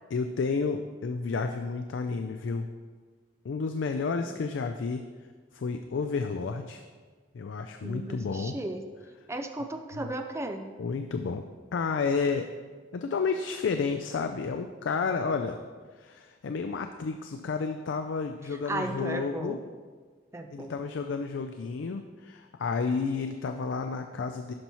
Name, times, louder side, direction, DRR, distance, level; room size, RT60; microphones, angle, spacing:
voice 1, 0.1-2.7 3.4-5.0 5.5-6.8 7.3-8.6 10.8-11.4 11.7-12.5 12.9-15.6 16.0-19.6 20.5-24.5, left 4 dB, 70° left, 7 dB, 0.4 m, -31 dB
voice 2, 7.8-8.8 9.3-10.6 18.5-19.6 20.3-20.7, right 2 dB, 15° right, 6 dB, 0.4 m, -35 dB
11.5 x 5.6 x 3.0 m, 1.5 s
head